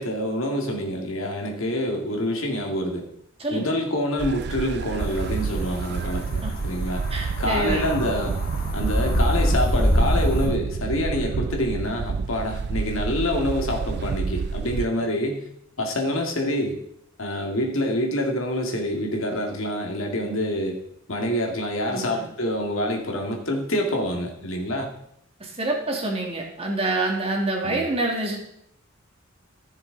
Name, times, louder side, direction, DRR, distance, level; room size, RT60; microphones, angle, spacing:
voice 1, 0.0-3.0 3.5-7.0 7.4-8.4 8.7-15.4 15.8-16.8 17.2-20.8 21.1-24.9 27.6-27.8, left 1 dB, 75° left, 1 dB, 2.0 m, -26 dB
voice 2, 3.4-3.7 6.4-6.5 7.1-8.0 21.9-22.2 25.4-28.4, right 2 dB, 30° right, 0 dB, 2.1 m, -27 dB
sound 1, 4.2-14.9, right 5 dB, 55° right, 0.3 m, -29 dB
sound 2, 5.0-10.5, equal, 45° left, 2.0 m, -26 dB
14.5 x 6.7 x 3.9 m, 0.74 s
head